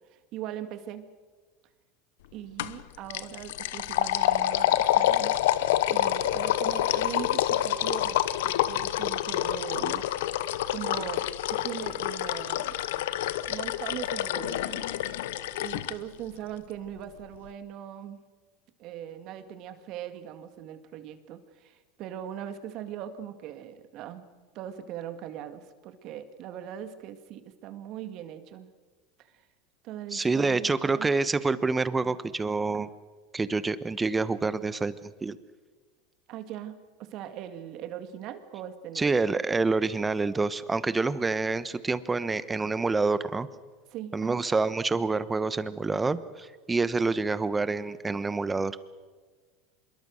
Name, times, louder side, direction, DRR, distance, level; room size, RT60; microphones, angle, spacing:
voice 1, 0.1-1.1 2.3-5.4 5.9-10.1 10.7-12.7 13.5-14.8 15.6-18.2 18.8-24.3 24.5-28.7 29.2-29.4 29.8-31.1 32.7-32.8 36.3-39.1 43.9-44.4, right 10 dB, 55° right, 9 dB, 2.1 m, -40 dB
sound 1, 2.6-2.8 3.1-15.9, left 13 dB, 80° left, 0.8 m, -27 dB
voice 2, 30.1-32.9 33.3-35.4 38.9-43.5 44.1-48.8, right 3 dB, 15° right, 14 dB, 1.1 m, -27 dB
25.5 x 22.0 x 6.5 m, 1.4 s
supercardioid pair, 110°, 0 cm